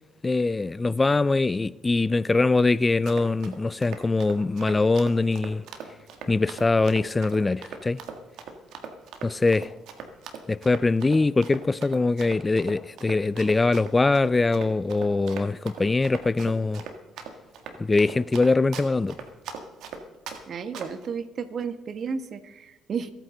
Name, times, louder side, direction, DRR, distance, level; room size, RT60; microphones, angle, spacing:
voice 1, 0.2-5.6 6.3-8.0 9.2-9.7 10.5-16.9 17.8-19.2, left 3 dB, 25° left, 0.4 m, -23 dB
Run, 2.8-20.4 20.7-21.1, right 7 dB, 70° right, 1.8 m, -40 dB
voice 2, 20.5-23.1, right 6 dB, 55° right, 1.3 m, -33 dB
26.5 x 9.1 x 3.9 m
hypercardioid pair, 60°, 0 cm